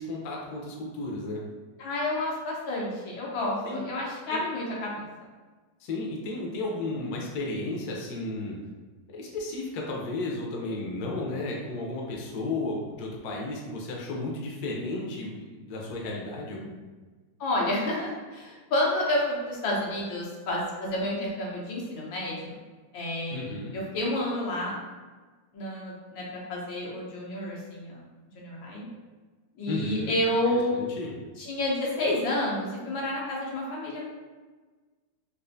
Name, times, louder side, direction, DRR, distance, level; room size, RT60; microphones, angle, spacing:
voice 1, 0.0-1.4 3.7-3.8 4.3-4.4 5.8-8.6 9.1-16.7 23.3-23.7 29.7-30.2 30.5-31.1, left 2 dB, 65° left, -2 dB, 1.1 m, -33 dB
voice 2, 1.8-5.0 17.4-22.6 22.9-24.7 25.5-28.0 28.3-28.9 29.5-30.7 31.4-34.0, left 1 dB, 85° left, -4 dB, 1.6 m, -30 dB
4.2 x 2.5 x 2.5 m, 1.3 s
omnidirectional pair, 2.1 m